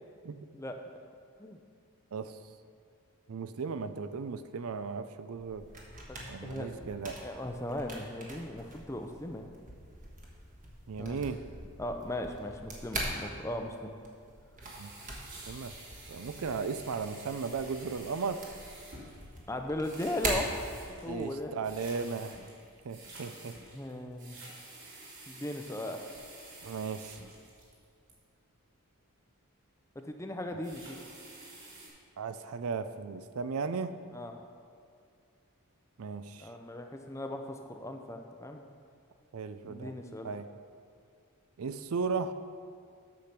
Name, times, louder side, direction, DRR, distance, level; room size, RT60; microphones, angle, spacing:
voice 1, 3.3-5.7 6.3-7.4 10.9-11.4 14.8-14.9 15.5-15.7 16.1-18.5 21.1-22.5 22.8-23.6 26.6-27.2 32.2-33.9 36.0-36.5 39.3-39.9 40.2-40.5 41.6-42.3, right 5 dB, 75° right, 11 dB, 0.5 m, -36 dB
sound 1, 5.3-21.3, right 2 dB, 35° right, 1.4 m, -42 dB
voice 2, 6.1-9.5 11.0-11.2 11.8-13.9 19.5-20.7 21.0-21.6 23.7-24.4 25.3-26.1 30.0-31.0 34.1-34.3 36.4-38.6 39.6-40.3, left 1 dB, 15° left, 4 dB, 0.6 m, -38 dB
sound 2, 14.6-28.1 30.5-31.9, right 2 dB, 55° right, 2.7 m, -50 dB
8.5 x 6.7 x 5.9 m, 2.3 s
head